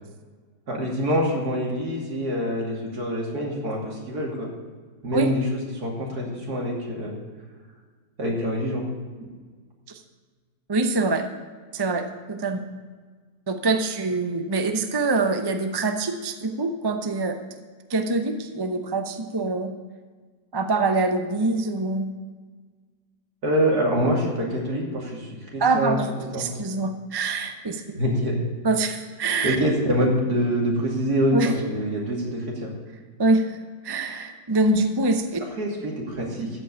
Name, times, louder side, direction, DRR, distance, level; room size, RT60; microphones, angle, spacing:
voice 1, 0.7-4.5 5.0-7.1 8.2-8.8 23.4-26.0 26.3-26.5 28.0-28.4 29.4-32.7 35.6-36.5, equal, 60° right, -2 dB, 3.2 m, -25 dB
voice 2, 10.7-11.3 11.7-12.6 13.5-17.4 17.9-19.7 20.5-22.1 25.6-26.1 26.4-27.8 28.6-29.6 31.3-31.5 33.2-33.6 33.8-35.4, right 3 dB, 25° right, 6 dB, 0.5 m, -24 dB
14.5 x 5.4 x 8.6 m, 1.5 s
omnidirectional pair, 1.8 m